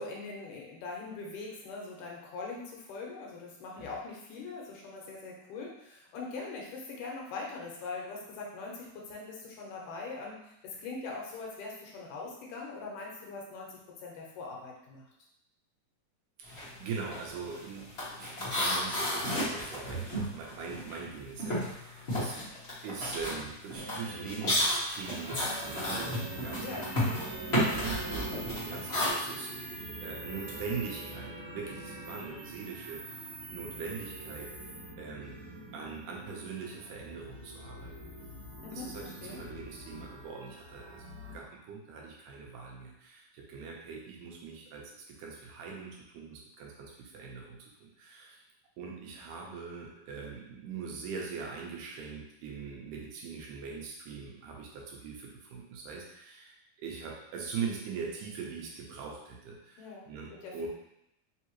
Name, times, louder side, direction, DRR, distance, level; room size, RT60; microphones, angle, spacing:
voice 1, 0.0-15.0 26.6-26.9 38.6-39.4 59.8-60.7, left 3 dB, 85° left, -2 dB, 2.5 m, -42 dB
voice 2, 16.4-22.4 22.8-27.2 27.7-34.5 35.0-35.4 35.7-38.1 38.7-41.0 41.3-48.4 48.8-60.7, right 5 dB, 90° right, -1 dB, 2.4 m, -42 dB
sound 1, 16.5-16.7 17.0-21.1 21.4-29.1, left 1 dB, 55° left, 0.6 m, -32 dB
sound 2, 23.8-41.4, right 2 dB, 70° right, 2.1 m, -44 dB
5.6 x 2.8 x 3.0 m, 0.81 s
omnidirectional pair, 3.7 m